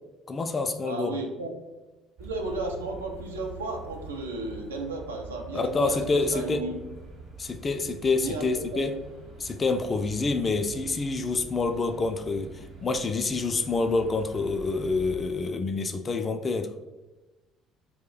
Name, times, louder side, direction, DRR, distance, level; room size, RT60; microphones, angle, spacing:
voice 1, 0.3-1.2 5.5-6.6 7.4-9.0 9.4-16.7, left 3 dB, 35° left, 8 dB, 0.3 m, -27 dB
voice 2, 0.8-1.5 2.2-6.8 8.2-8.8, right 2 dB, 90° right, 2 dB, 0.4 m, -34 dB
sound 1, 2.2-15.2, right 3 dB, 55° right, 0.9 m, -45 dB
2.3 x 2.1 x 3.8 m, 1.1 s
hypercardioid pair, 55°, 0 cm